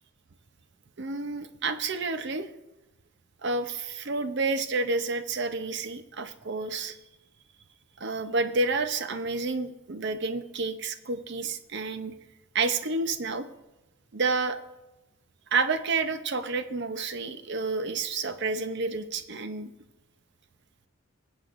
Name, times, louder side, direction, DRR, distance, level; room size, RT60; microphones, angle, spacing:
voice 1, 1.0-2.5 3.4-7.0 8.0-12.1 12.5-13.5 14.1-14.6 15.5-19.7, right 3 dB, 55° right, 9 dB, 0.7 m, -29 dB
20.0 x 8.3 x 2.6 m, 1.0 s
head